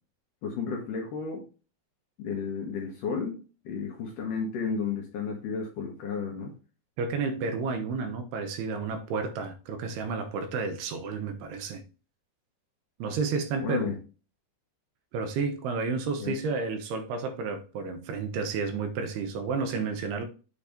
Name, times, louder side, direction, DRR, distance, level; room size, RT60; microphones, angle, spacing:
voice 1, 0.4-1.5 2.2-3.4 3.7-6.5 13.6-14.0 16.2-16.4, left 5 dB, 65° left, 2.2 m, -32 dB
voice 2, 7.0-11.8 13.0-14.0 15.1-20.3, right 4 dB, 75° right, 2.7 m, -31 dB
8.3 x 3.0 x 5.0 m
omnidirectional pair, 5.0 m